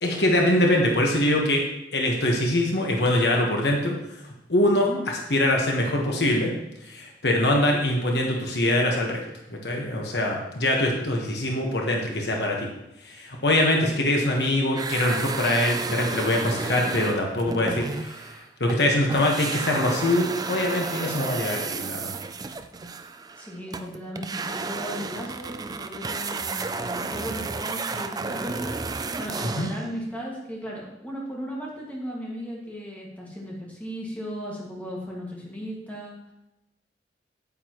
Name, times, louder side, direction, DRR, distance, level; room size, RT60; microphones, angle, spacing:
voice 1, 0.0-1.7 1.9-3.9 4.5-6.5 6.8-9.2 9.5-12.7 13.0-22.1 29.4-29.7, left 1 dB, 70° left, 0 dB, 1.3 m, -23 dB
voice 2, 4.7-5.0 23.4-28.7 29.2-36.3, equal, 10° left, -4 dB, 1.9 m, -36 dB
sound 1, 14.7-18.8 19.1-29.9, right 4 dB, 20° right, 0.4 m, -32 dB
8.8 x 8.5 x 3.1 m, 0.89 s
head